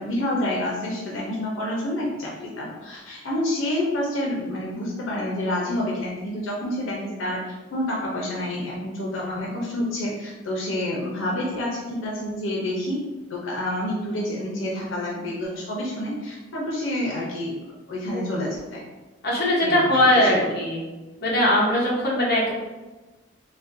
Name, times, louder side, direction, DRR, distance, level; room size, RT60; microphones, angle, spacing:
voice 1, 0.0-13.0 13.3-17.6 17.9-18.8 19.6-20.5, left 1 dB, 90° left, -3 dB, 0.7 m, -28 dB
voice 2, 19.2-20.8 21.2-22.5, left 1 dB, 55° left, -5 dB, 1.0 m, -20 dB
4.0 x 2.2 x 2.6 m, 1.2 s
head